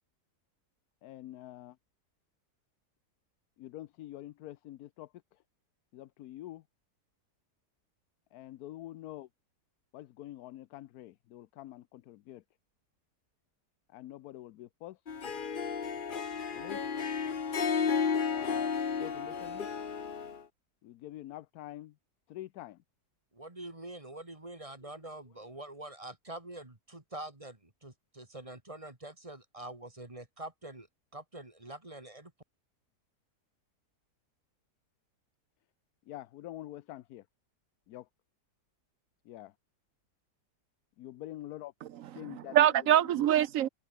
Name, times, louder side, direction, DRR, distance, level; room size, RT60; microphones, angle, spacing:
voice 1, 1.0-1.7 3.6-5.1 5.9-6.6 8.3-9.3 9.9-12.4 13.9-15.0 16.6-16.8 18.3-19.7 20.8-21.9 22.3-22.8 36.1-37.2 37.9-38.0 39.3-39.5 41.0-41.7 42.1-42.5 43.1-43.3, left 14 dB, 70° left, 1.1 m, -46 dB
Harp, 15.1-20.4, left 6 dB, 35° left, 1.1 m, -33 dB
voice 2, 23.3-30.9 31.1-32.3, right 1 dB, 20° right, 2.3 m, -45 dB
voice 3, 41.8-43.7, right 11 dB, 65° right, 1.0 m, -25 dB
omnidirectional pair, 1.7 m